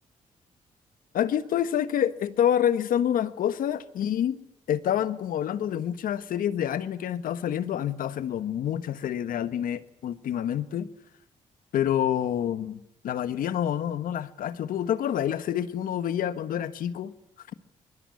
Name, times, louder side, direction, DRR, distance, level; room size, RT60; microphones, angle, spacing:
voice 1, 1.1-4.4 4.7-10.9 11.7-17.1, left 10 dB, 80° left, 1.3 m, -27 dB
24.5 x 21.5 x 9.6 m
supercardioid pair, 60°, 14 cm